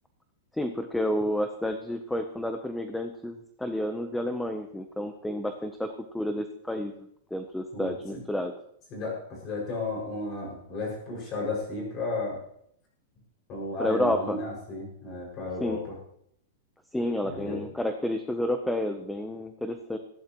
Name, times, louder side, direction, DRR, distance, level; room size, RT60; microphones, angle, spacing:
voice 1, 0.6-6.9 7.3-8.5 13.8-14.4 15.6-15.8 16.9-20.0, left 1 dB, 5° left, 7 dB, 0.7 m, -30 dB
voice 2, 7.7-8.2 8.9-12.4 13.5-16.0 17.3-17.7, left 2 dB, 25° left, -2 dB, 5.7 m, -34 dB
19.0 x 15.0 x 3.0 m, 0.70 s
supercardioid pair, 175°, 0 cm